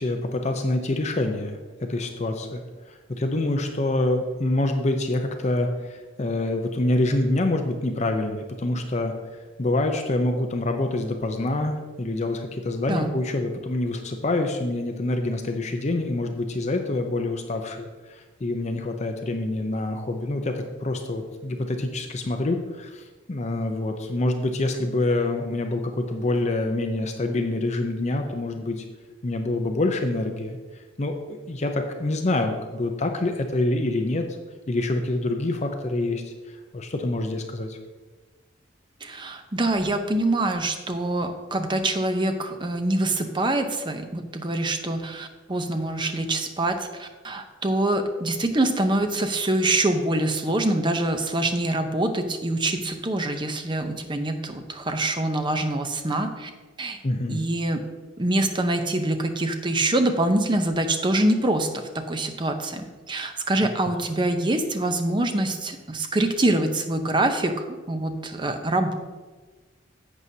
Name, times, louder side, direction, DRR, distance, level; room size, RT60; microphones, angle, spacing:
voice 1, 0.0-9.1 9.6-28.8 29.2-34.2 34.7-37.8 57.0-57.4 63.9-64.0, left 2 dB, 35° left, 5 dB, 0.6 m, -26 dB
voice 2, 39.0-56.5 56.8-57.0 57.3-57.9 58.2-69.0, right 1 dB, 25° right, 6 dB, 0.7 m, -25 dB
11.0 x 7.9 x 2.8 m, 1.3 s
head